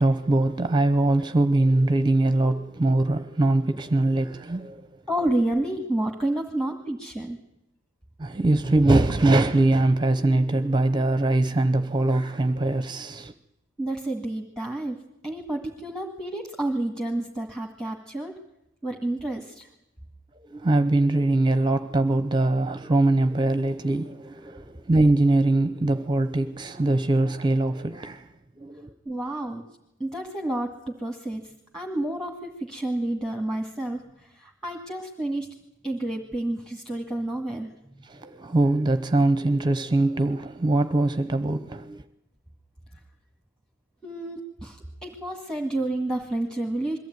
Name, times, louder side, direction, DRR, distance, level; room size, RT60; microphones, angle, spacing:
voice 1, 0.0-4.9 8.2-13.3 20.5-28.3 28.6-28.9 38.0-42.0, right 2 dB, 25° right, 0.8 m, -22 dB
voice 2, 5.1-7.4 13.8-15.0 15.2-18.3 18.8-19.7 29.1-29.6 30.0-35.5 35.8-38.0 44.0-47.0, right 1 dB, 5° left, 1.9 m, -30 dB
22.5 x 15.0 x 9.3 m
head